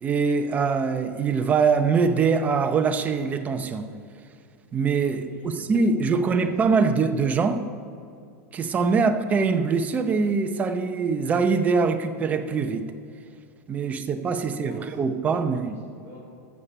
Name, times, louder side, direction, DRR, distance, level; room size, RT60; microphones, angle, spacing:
voice 1, 0.0-3.9 4.7-5.2 5.7-7.6 8.5-12.9 13.7-15.8, right 5 dB, 20° right, 7 dB, 0.7 m, -23 dB
voice 2, 5.1-7.2 8.9-9.2 14.4-16.2, equal, 25° left, -6 dB, 3.3 m, -45 dB
13.5 x 7.4 x 5.5 m, 2.4 s
supercardioid pair, 150°, 8 cm